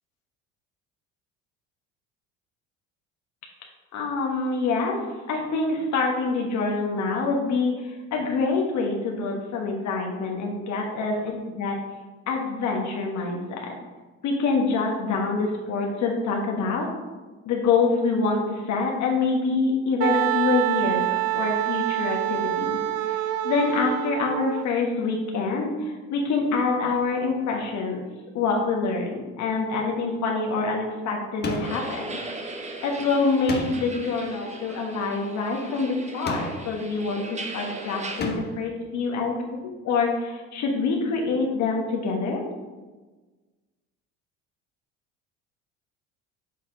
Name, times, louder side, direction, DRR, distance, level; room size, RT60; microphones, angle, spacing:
voice 1, 3.9-5.0 5.3-11.8 12.3-13.7 14.2-16.9 17.4-21.0 21.3-28.0 28.3-32.2 32.8-39.4 39.8-42.4, left 4 dB, 50° left, 0 dB, 1.3 m, -26 dB
Wind instrument woodwind instrument, 20.0-24.6, right 15 dB, 45° right, 0.4 m, -26 dB
sound 1, 31.4-32.0 33.5-34.0 36.3-36.8 38.2-38.7, left 1 dB, 25° left, 1.0 m, -32 dB
sound 2, 31.6-38.2, right 2 dB, 20° right, 0.9 m, -38 dB
7.2 x 4.1 x 3.7 m, 1.3 s
hypercardioid pair, 70°, 37 cm